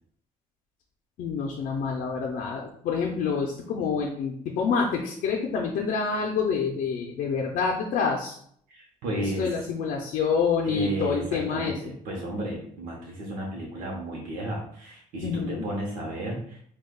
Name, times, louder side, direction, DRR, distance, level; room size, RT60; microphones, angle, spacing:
voice 1, 1.2-8.4 9.4-11.9 15.2-15.6, left 5 dB, 70° left, 0 dB, 0.5 m, -27 dB
voice 2, 8.7-9.5 10.6-16.6, right 1 dB, 90° right, -1 dB, 0.7 m, -33 dB
4.8 x 2.2 x 2.3 m, 0.63 s
cardioid pair, 120°, 14 cm